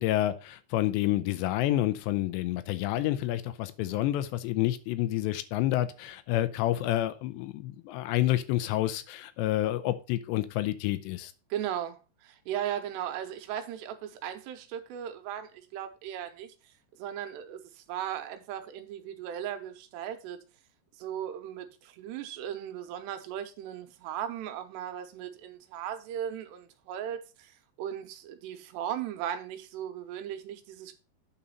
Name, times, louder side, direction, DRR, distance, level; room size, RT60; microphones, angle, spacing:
voice 1, 0.0-11.3, left 14 dB, 85° left, 2.9 m, -29 dB
voice 2, 11.5-16.5 17.0-20.4 21.0-30.9, right 10 dB, 80° right, 3.0 m, -37 dB
8.7 x 4.1 x 5.4 m
omnidirectional pair, 4.9 m